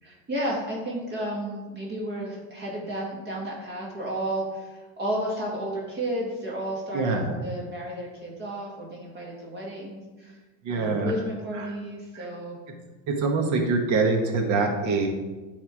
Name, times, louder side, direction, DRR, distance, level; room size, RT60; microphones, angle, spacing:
voice 1, 0.0-10.4 10.7-12.6, right 1 dB, 25° right, -3 dB, 1.7 m, -32 dB
voice 2, 6.9-7.4 10.6-11.1 11.5-11.7 12.1-12.3 13.1-15.1, right 3 dB, 45° right, 2 dB, 1.4 m, -25 dB
9.0 x 3.6 x 4.7 m, 1.3 s
supercardioid pair, 130°, 40 cm